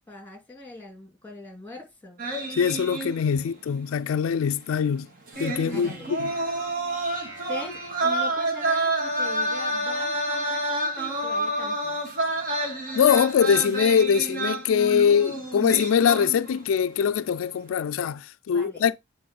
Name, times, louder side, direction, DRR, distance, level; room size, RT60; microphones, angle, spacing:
voice 1, 0.1-2.2 5.6-6.2 7.5-12.0 18.5-18.9, left 2 dB, 10° left, 2.5 m, -41 dB
sound 1, 2.2-3.6 3.9-4.0 5.3-16.7 17.0-17.4, right 2 dB, 45° right, 2.2 m, -29 dB
voice 2, 2.5-5.1 5.4-5.9 6.2-6.3 12.9-19.0, left 7 dB, 85° left, 0.3 m, -22 dB
sound 2, 5.3-8.6, left 1 dB, 15° right, 4.5 m, -46 dB
8.5 x 3.6 x 5.2 m
head